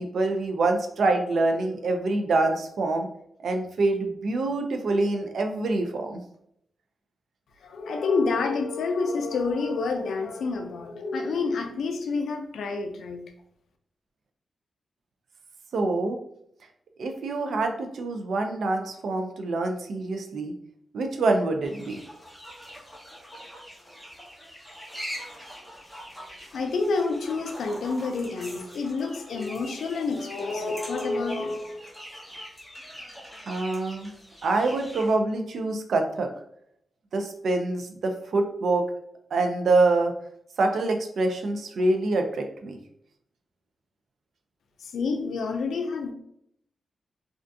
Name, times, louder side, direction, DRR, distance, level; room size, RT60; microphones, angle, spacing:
voice 1, 0.0-3.1 3.4-6.2 15.7-16.2 17.0-20.5 20.9-22.0 33.5-34.1 34.4-36.3 37.1-38.9 39.3-40.1 40.6-42.8, right 2 dB, 65° right, 5 dB, 0.3 m, -25 dB
voice 2, 7.6-13.2 26.5-31.8 44.8-46.1, left 4 dB, 80° left, 5 dB, 0.3 m, -28 dB
sound 1, 21.6-35.2, equal, 5° left, 0.5 m, -43 dB
2.4 x 2.3 x 2.5 m, 0.72 s
wide cardioid pair, 175°, 0 cm